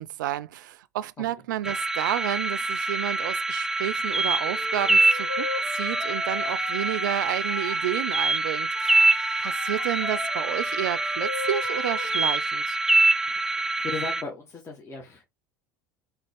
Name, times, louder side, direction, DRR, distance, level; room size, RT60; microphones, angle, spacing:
voice 1, 0.0-9.0 9.4-12.8, right 13 dB, 75° right, 0.4 m, -31 dB
sound 1, 1.6-14.2, right 2 dB, 5° right, 0.4 m, -25 dB
Wind instrument woodwind instrument, 4.4-7.9 8.7-12.5, left 5 dB, 85° left, 1.0 m, -37 dB
voice 2, 13.3-15.2, left 3 dB, 25° left, 1.3 m, -37 dB
4.0 x 3.1 x 3.4 m
hypercardioid pair, 75°, 10 cm